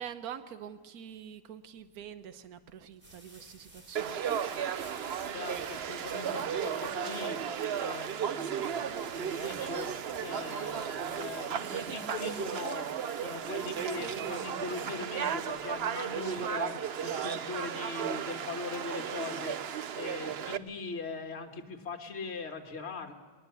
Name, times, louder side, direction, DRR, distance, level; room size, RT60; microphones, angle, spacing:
voice 1, 0.0-4.7 20.2-20.7, right 9 dB, 85° right, 11 dB, 1.4 m, -46 dB
sound 1, 1.9-16.7, right 1 dB, 35° right, 3.4 m, -55 dB
Conversation / Crowd, 4.0-20.6, right 8 dB, 55° right, 0.8 m, -35 dB
voice 2, 5.3-7.4 7.8-9.9 10.2-12.9 13.1-16.7 17.0-19.6 20.0-23.1, left 4 dB, 45° left, 3 dB, 1.9 m, -40 dB
20.5 x 20.5 x 6.9 m, 1.5 s
omnidirectional pair, 1.5 m